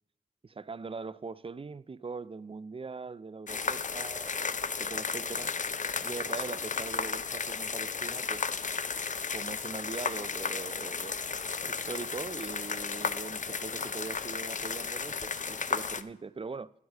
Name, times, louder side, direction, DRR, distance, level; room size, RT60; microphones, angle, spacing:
voice 1, 0.4-5.5 6.0-8.5 9.3-16.7, right 4 dB, 35° right, 0.4 m, -41 dB
sound 1, 3.5-16.0, left 5 dB, 50° left, 0.5 m, -34 dB
12.0 x 4.8 x 6.3 m
wide cardioid pair, 55°, 16 cm